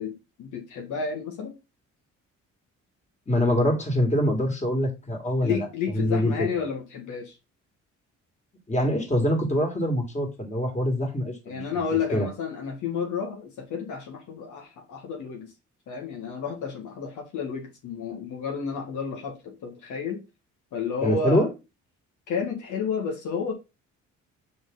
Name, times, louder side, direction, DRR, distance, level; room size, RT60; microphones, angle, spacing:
voice 1, 0.0-1.5 5.4-7.4 11.5-15.5 15.9-20.2 20.7-21.5 22.3-23.5, left 6 dB, 75° left, 1.9 m, -31 dB
voice 2, 3.3-5.7 5.9-6.3 8.7-11.8 12.1-12.3 21.0-21.5, equal, 25° left, 2.8 m, -24 dB
6.0 x 5.0 x 4.1 m
cardioid pair, 90°, 30 cm